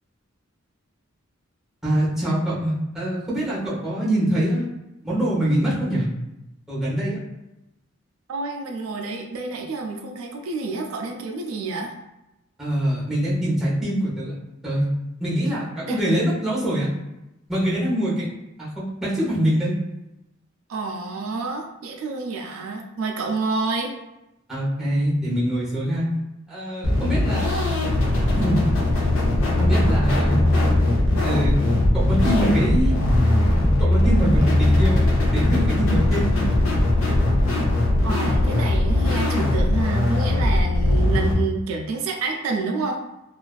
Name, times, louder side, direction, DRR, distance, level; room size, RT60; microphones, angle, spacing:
voice 1, 1.8-4.7 5.0-6.1 6.7-7.2 12.6-14.3 14.6-14.8 15.2-16.9 17.5-18.3 18.6-19.7 24.5-26.1 26.5-27.8 28.4-28.6 29.6-30.4 31.2-31.5 31.9-33.0 33.8-35.0 35.3-36.5, right 1 dB, ahead, -8 dB, 0.8 m, -24 dB
voice 2, 8.3-11.9 15.9-16.0 20.7-23.9 38.0-43.0, right 3 dB, 85° right, 2 dB, 0.3 m, -28 dB
sound 1, 26.8-41.3, left 1 dB, 80° left, 0.7 m, -20 dB
2.4 x 2.3 x 2.3 m, 0.92 s
head